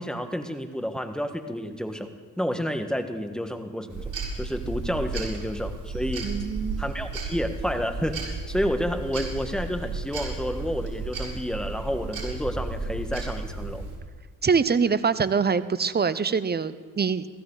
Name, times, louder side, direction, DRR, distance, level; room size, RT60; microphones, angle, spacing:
voice 1, 0.0-6.3 6.8-13.8, equal, ahead, 6 dB, 1.6 m, -30 dB
sound 1, 3.9-14.0, right 3 dB, 50° right, 4.4 m, -33 dB
voice 2, 6.2-6.8 14.4-17.3, right 5 dB, 25° right, 15 dB, 0.8 m, -24 dB
16.0 x 14.0 x 4.1 m, 1.5 s
supercardioid pair, 50°, 38 cm